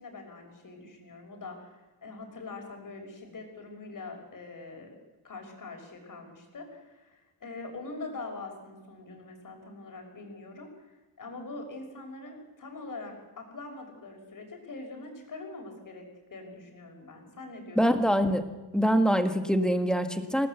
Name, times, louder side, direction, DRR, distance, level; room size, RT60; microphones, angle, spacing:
voice 1, 0.0-4.9 5.2-16.0 16.3-18.0, left 3 dB, 45° left, 3 dB, 5.9 m, -43 dB
voice 2, 17.7-18.4 18.7-20.5, equal, ahead, 7 dB, 1.6 m, -24 dB
26.5 x 18.0 x 8.2 m, 1.1 s
wide cardioid pair, 160°, 45 cm